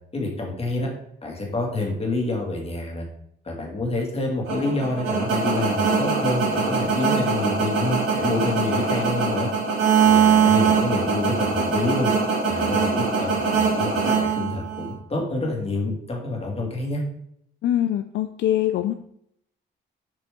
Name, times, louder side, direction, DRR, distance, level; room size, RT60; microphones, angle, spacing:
voice 1, 0.1-0.9 1.2-3.1 3.4-9.5 10.0-12.1 12.4-17.0, left 2 dB, 30° left, 0 dB, 2.3 m, -27 dB
sound 1, 4.5-14.9, right 5 dB, 80° right, 2.5 m, -22 dB
voice 2, 17.6-18.9, left 12 dB, 65° left, 8 dB, 0.4 m, -23 dB
7.1 x 5.0 x 3.8 m, 0.73 s
cardioid pair, 90°, 20 cm